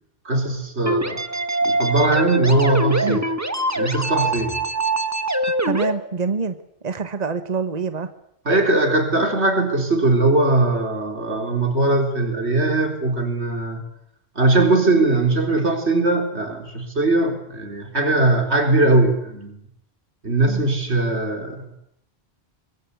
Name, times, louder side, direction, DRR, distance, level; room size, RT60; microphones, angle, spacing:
voice 1, 0.3-1.2 1.6-3.3 3.8-4.6 8.5-13.8 14.4-19.6 20.2-21.8, right 2 dB, 90° right, 5 dB, 4.2 m, -20 dB
sound 1, 0.9-5.9, right 1 dB, 15° right, 1.4 m, -23 dB
voice 2, 5.6-6.6 6.8-8.1 14.9-15.0 20.5-20.6, right 5 dB, 40° right, 10 dB, 1.3 m, -26 dB
24.0 x 21.5 x 8.4 m, 0.74 s
omnidirectional pair, 1.1 m